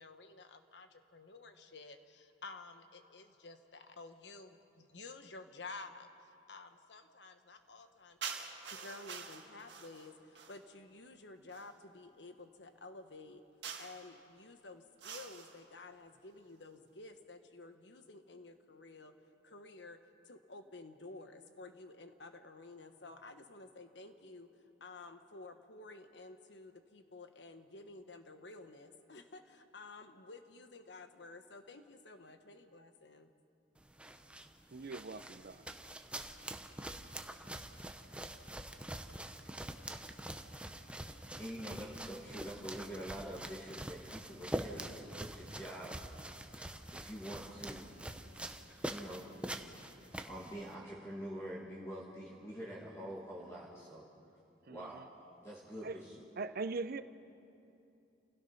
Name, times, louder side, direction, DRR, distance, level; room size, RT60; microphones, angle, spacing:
voice 1, 0.0-8.2 8.7-13.4 13.8-19.1 19.4-20.0 20.2-24.5 24.8-33.3, left 3 dB, 70° left, 8 dB, 1.3 m, -52 dB
sound 1, 8.2-10.7 11.5-11.8 13.6-14.1 15.0-15.6, right 6 dB, 75° right, 1.8 m, -46 dB
sound 2, 33.8-50.7, right 1 dB, 5° right, 0.8 m, -45 dB
voice 2, 34.7-35.6 54.7-55.0 55.8-56.0 56.4-57.0, right 3 dB, 55° right, 13 dB, 0.6 m, -41 dB
voice 3, 41.4-46.0 46.5-47.9 48.9-49.2 50.2-54.1 54.7-55.0 55.4-56.2, equal, 15° left, -5 dB, 2.2 m, -46 dB
29.0 x 16.5 x 5.7 m, 2.7 s
head